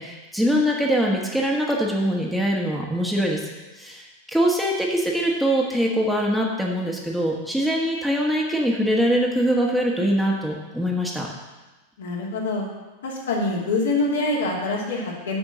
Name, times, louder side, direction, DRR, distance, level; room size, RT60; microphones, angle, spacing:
voice 1, 0.0-3.4 3.8-11.3, equal, ahead, -2 dB, 1.5 m, -23 dB
voice 2, 12.0-12.7 13.0-15.4, left 2 dB, 65° left, -3 dB, 2.6 m, -25 dB
7.9 x 6.2 x 7.4 m, 1.1 s
figure-of-eight pair, 90°, 0 cm